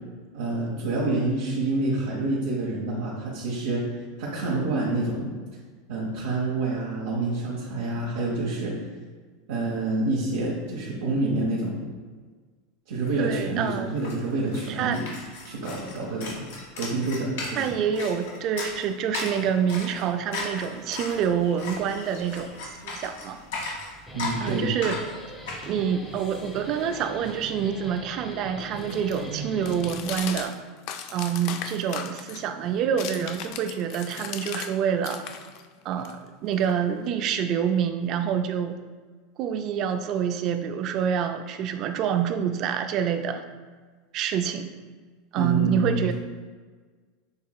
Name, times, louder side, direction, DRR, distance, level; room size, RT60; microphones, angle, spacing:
voice 1, 0.3-3.8 4.2-5.3 5.9-8.8 9.5-11.8 12.9-15.1 15.5-16.4 16.8-17.7 24.1-24.7 45.4-46.1, right 2 dB, 85° right, -5 dB, 0.9 m, -27 dB
sound 1, 13.2-13.3 13.5-27.3, left 3 dB, 85° left, 1.2 m, -37 dB
voice 2, 13.2-14.0 14.7-15.0 17.6-23.4 24.4-25.0 25.6-30.5 31.1-35.3 35.8-38.8 39.4-43.4 44.1-44.7 45.3-46.1, right 8 dB, 50° right, 8 dB, 0.4 m, -27 dB
Guitar, 23.9-30.4, right 1 dB, 10° left, 0.7 m, -41 dB
sound 2, 27.4-34.7 35.0-37.2, left 8 dB, 60° left, 0.3 m, -39 dB
6.4 x 3.0 x 2.3 m, 1.5 s
supercardioid pair, 115°, 0 cm